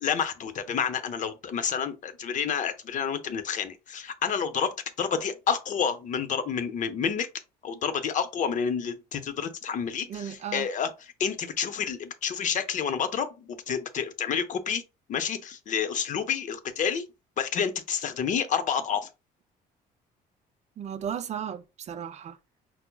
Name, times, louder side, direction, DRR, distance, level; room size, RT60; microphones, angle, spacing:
voice 1, 0.0-7.3 7.6-10.9 11.2-14.8 15.1-17.1 17.4-19.1, left 7 dB, 50° left, 0.6 m, -29 dB
voice 2, 10.1-10.7 20.8-22.4, right 8 dB, 40° right, 0.4 m, -35 dB
5.6 x 2.0 x 2.2 m
cardioid pair, 110°, 17 cm